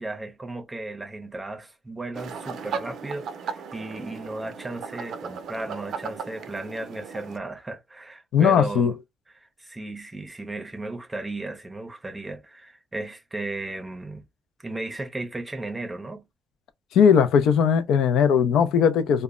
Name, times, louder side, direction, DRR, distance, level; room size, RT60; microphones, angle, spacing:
voice 1, 0.0-8.9 9.3-14.2 14.6-16.3, right 2 dB, 15° right, 0.6 m, -35 dB
sound 1, 2.1-7.4, right 6 dB, 70° right, 0.4 m, -36 dB
voice 2, 8.3-8.9 16.9-19.2, left 7 dB, 80° left, 0.4 m, -19 dB
2.1 x 2.0 x 3.5 m
cardioid pair, 90°, 0 cm